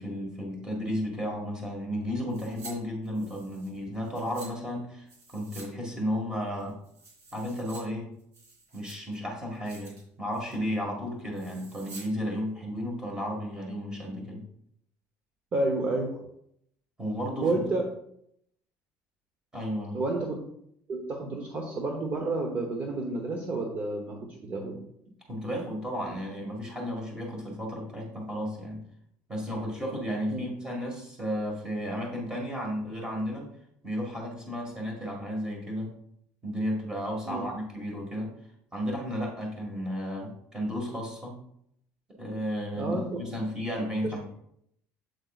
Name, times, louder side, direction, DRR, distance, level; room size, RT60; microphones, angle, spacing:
voice 1, 0.0-5.1 5.3-6.8 7.3-8.1 8.7-14.5 17.0-17.6 19.5-20.0 25.3-28.8 29.3-33.5 33.8-35.9 36.4-38.3 38.7-41.4 42.2-44.3, equal, 10° right, -1 dB, 1.9 m, -33 dB
sound 1, 2.3-2.7 3.0-4.5 5.1-5.7 6.0-6.1 6.5-7.8 8.2-9.2 9.5-10.0 10.3-10.6 11.3-12.1 12.4-12.5, right 3 dB, 50° right, 3.3 m, -49 dB
voice 2, 15.5-16.3 17.4-17.8 19.9-20.4 20.9-24.8 30.3-30.4 37.2-37.5 42.7-43.1 44.0-44.1, right 2 dB, 30° right, 2 dB, 1.0 m, -30 dB
8.0 x 8.0 x 2.5 m, 0.71 s
cardioid pair, 170°, 6 cm